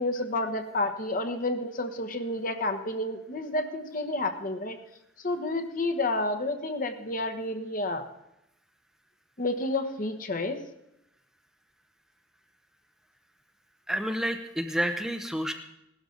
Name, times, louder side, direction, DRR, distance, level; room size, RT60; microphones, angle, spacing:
voice 1, 0.0-4.8 5.2-8.1 9.4-10.6, left 2 dB, 45° left, 7 dB, 1.1 m, -30 dB
voice 2, 13.9-15.5, equal, 5° right, 5 dB, 0.6 m, -29 dB
17.0 x 12.0 x 3.9 m, 0.84 s
head